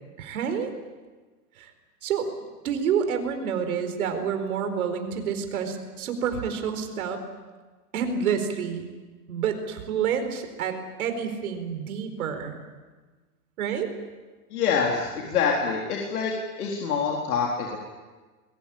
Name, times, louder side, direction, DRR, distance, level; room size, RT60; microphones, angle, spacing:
voice 1, 0.2-0.7 1.6-1.7 2.0-2.3 2.6-7.2 7.9-8.9 9.3-10.7 11.0-12.6 13.6-13.9, right 7 dB, 65° right, 7 dB, 4.5 m, -28 dB
voice 2, 14.5-16.3 16.6-17.8, left 6 dB, 70° left, -1 dB, 4.2 m, -26 dB
22.5 x 21.5 x 8.7 m, 1.3 s
supercardioid pair, 165°, 47 cm